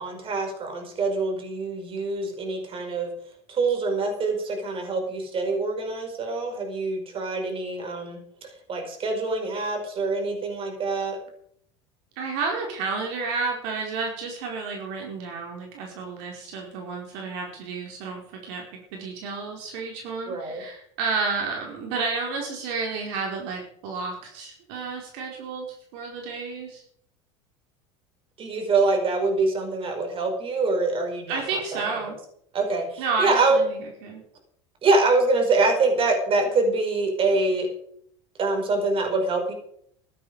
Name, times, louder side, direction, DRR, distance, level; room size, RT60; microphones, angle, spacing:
voice 1, 0.0-3.1 3.5-8.2 8.7-11.2 20.3-20.6 28.4-31.4 31.7-31.8 32.5-33.6 34.8-37.7 38.4-39.5, right 3 dB, 40° right, 4 dB, 5.7 m, -25 dB
voice 2, 12.2-25.7 25.9-26.8 31.3-32.2 33.0-34.2, right 4 dB, 70° right, 1 dB, 4.8 m, -31 dB
16.5 x 12.0 x 5.0 m, 0.66 s
supercardioid pair, 100°, 14 cm